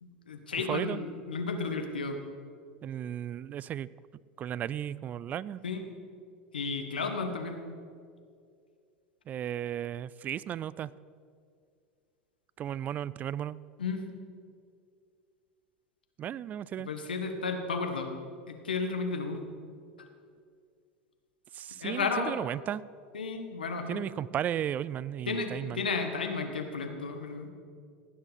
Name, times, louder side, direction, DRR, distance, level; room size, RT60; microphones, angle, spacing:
voice 1, 0.0-2.2 5.6-5.9 6.5-7.7 13.8-14.0 16.8-18.1 18.5-19.4 21.8-22.4 23.1-24.1 25.3-27.5, left 4 dB, 85° left, 6 dB, 1.3 m, -33 dB
voice 2, 0.7-1.0 2.8-3.9 4.4-5.6 9.3-10.9 12.6-13.6 16.2-16.9 21.5-22.8 23.9-25.9, right 10 dB, 35° right, 20 dB, 0.3 m, -35 dB
16.5 x 9.6 x 4.1 m, 2.2 s
hypercardioid pair, 85°, 5 cm